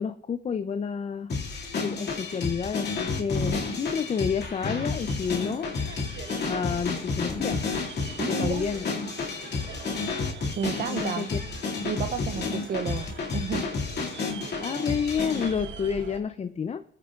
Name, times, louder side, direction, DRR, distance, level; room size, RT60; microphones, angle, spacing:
voice 1, 0.0-1.3 1.8-5.7 6.5-7.7 8.3-8.9 10.9-11.4 12.2-12.5 14.6-16.8, left 6 dB, 35° left, 0.5 m, -30 dB
sound 1, 1.3-15.5, left 4 dB, 55° left, 2.5 m, -31 dB
sound 2, 4.4-16.2, right 7 dB, 70° right, 1.2 m, -45 dB
voice 2, 8.2-8.8 10.6-11.3 11.8-13.7, right 7 dB, 45° right, 0.6 m, -32 dB
19.0 x 9.6 x 2.5 m
cardioid pair, 90°, 20 cm